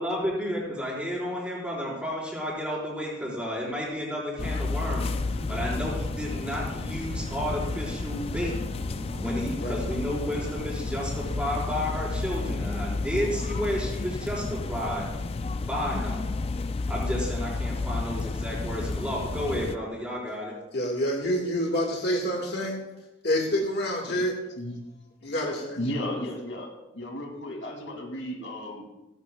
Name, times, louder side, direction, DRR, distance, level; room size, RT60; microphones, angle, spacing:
voice 1, 0.0-8.6 9.2-15.1 15.6-16.3 16.9-20.5, equal, 5° right, -6 dB, 4.9 m, -32 dB
sound 1, 4.4-19.8, left 3 dB, 30° left, 0.3 m, -31 dB
sound 2, 5.0-13.0, equal, 60° right, 1.2 m, -42 dB
voice 2, 20.7-22.9 23.2-24.4 25.2-25.8, equal, 55° left, 0 dB, 1.8 m, -27 dB
voice 3, 25.8-26.7 26.9-28.9, left 1 dB, 75° left, 1 dB, 2.5 m, -34 dB
17.5 x 14.5 x 2.3 m, 0.95 s
head